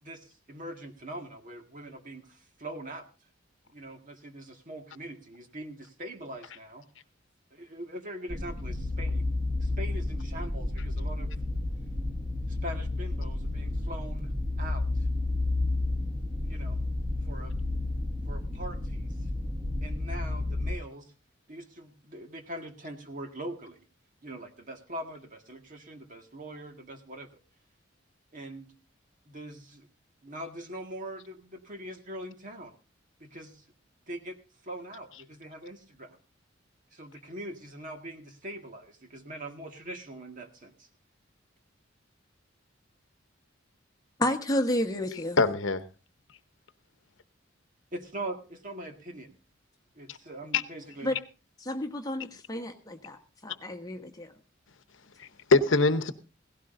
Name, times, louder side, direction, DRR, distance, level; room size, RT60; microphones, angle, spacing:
voice 1, 0.0-3.1 3.7-6.9 7.5-9.3 9.6-11.3 12.5-14.3 14.6-15.1 16.4-16.8 17.2-17.5 18.3-19.2 19.8-21.1 21.5-23.8 24.2-27.3 28.3-28.7 29.2-29.9 30.2-32.7 33.2-33.6 34.1-34.4 34.6-36.2 36.9-40.9 47.9-49.4 49.9-51.2, right 1 dB, 40° right, 4 dB, 1.9 m, -42 dB
sound 1, 8.3-20.7, left 2 dB, 15° right, 1.0 m, -31 dB
voice 2, 44.2-45.4 51.0-51.2 51.6-54.3, left 1 dB, 20° left, 5 dB, 1.3 m, -31 dB
voice 3, 45.4-45.8 50.1-50.2 50.5-50.6 55.2-56.1, left 3 dB, 75° left, 11 dB, 0.9 m, -23 dB
17.0 x 16.0 x 2.6 m, 0.33 s
head